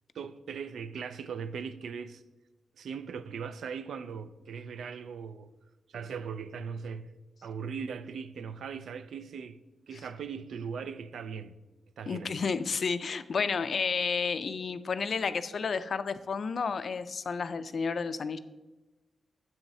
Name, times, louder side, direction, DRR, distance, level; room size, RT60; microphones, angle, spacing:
voice 1, 0.1-2.2 2.8-5.5 5.9-7.1 7.4-9.6 9.9-11.6 12.0-12.4, right 6 dB, 85° right, 0.3 m, -39 dB
voice 2, 12.1-18.4, left 5 dB, 60° left, 0.3 m, -31 dB
7.7 x 7.0 x 2.7 m
wide cardioid pair, 100°, 0 cm